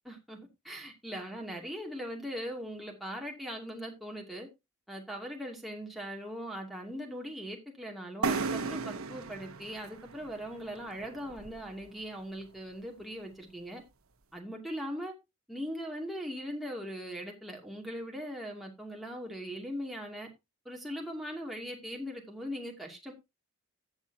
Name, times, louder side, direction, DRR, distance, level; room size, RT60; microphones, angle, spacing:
voice 1, 0.1-0.4 0.6-4.5 4.9-13.8 14.3-15.1 15.5-20.3 20.6-23.1, equal, ahead, 2.5 m, -40 dB
sound 1, 8.2-11.9, right 4 dB, 70° right, 0.9 m, -36 dB
15.0 x 7.2 x 2.8 m
head